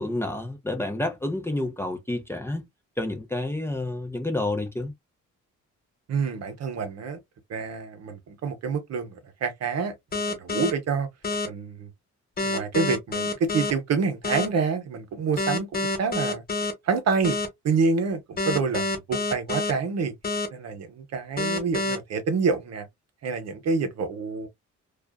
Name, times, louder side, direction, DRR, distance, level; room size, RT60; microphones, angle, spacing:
voice 1, 0.0-2.6 3.0-4.9, left 1 dB, 10° left, 0.6 m, -29 dB
voice 2, 6.1-7.2 7.5-11.1 11.4-11.9 12.4-16.4 16.8-17.4 17.6-20.1 20.5-22.9 23.2-24.5, right 5 dB, 60° right, 0.8 m, -27 dB
sound 1, 10.1-10.7 11.2-11.5 12.4-13.7 14.2-14.5 15.4-16.7 17.2-17.5 18.4-19.7 20.2-20.5 21.4-22.0, left 3 dB, 30° left, 0.9 m, -27 dB
2.4 x 2.4 x 2.2 m
cardioid pair, 90°, 30 cm